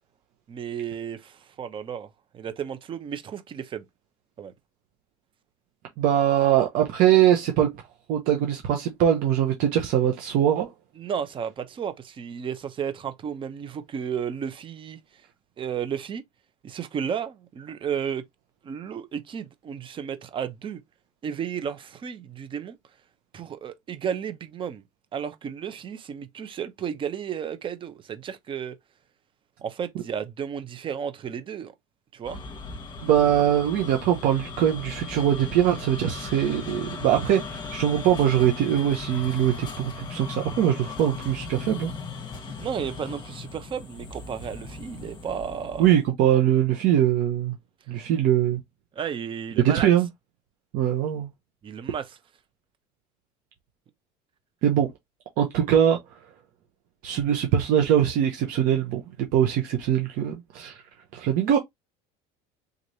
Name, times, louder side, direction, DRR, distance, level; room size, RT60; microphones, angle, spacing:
voice 1, 0.5-2.1 2.3-3.9 4.4-4.5 11.0-15.0 15.6-16.2 16.6-18.2 18.6-20.8 21.2-22.8 23.3-24.8 25.1-28.7 29.6-31.7 32.1-32.4 42.5-45.9 48.9-49.9 51.6-52.2, right 8 dB, 35° right, 0.8 m, -33 dB
voice 2, 6.0-7.7 8.1-10.7 33.0-41.9 45.8-47.5 47.9-48.6 49.6-50.1 50.7-51.3 54.6-54.9 55.4-56.0 57.0-59.0 59.3-60.7 61.1-61.6, right 10 dB, 65° right, 0.9 m, -22 dB
sound 1, 32.2-46.1, left 4 dB, 30° left, 1.2 m, -38 dB
3.9 x 3.1 x 2.7 m
cardioid pair, 120°, 15 cm